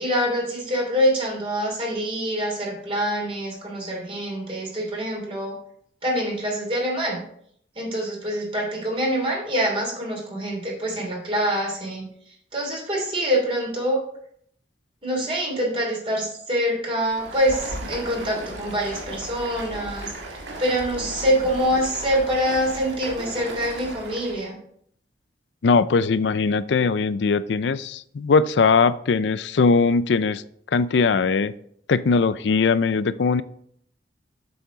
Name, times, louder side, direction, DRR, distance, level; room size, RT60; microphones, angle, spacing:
voice 1, 0.0-5.5 6.0-7.2 7.7-14.0 15.0-24.6, equal, 30° right, -2 dB, 3.0 m, -25 dB
Stream, 16.9-24.5, right 1 dB, 90° right, 1.8 m, -36 dB
voice 2, 25.6-30.4 30.7-31.5 31.9-33.4, left 4 dB, 70° left, 16 dB, 0.4 m, -20 dB
8.1 x 7.2 x 3.9 m, 0.66 s
head